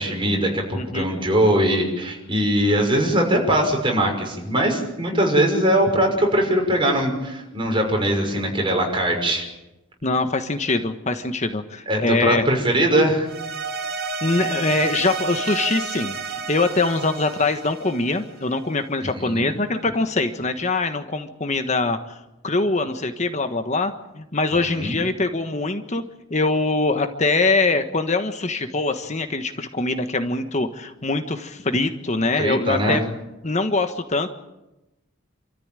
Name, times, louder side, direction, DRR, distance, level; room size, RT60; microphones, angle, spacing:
voice 1, 0.0-9.5 11.9-13.3 19.0-19.5 24.6-24.9 32.4-33.0, right 1 dB, 25° right, 2 dB, 6.0 m, -21 dB
voice 2, 0.7-1.1 10.0-12.4 14.2-22.2 22.4-26.0 26.3-33.0 33.4-34.3, left 3 dB, 35° left, 8 dB, 1.4 m, -23 dB
sound 1, 13.3-18.6, right 4 dB, 50° right, 2.3 m, -31 dB
28.0 x 14.0 x 9.1 m, 0.97 s
head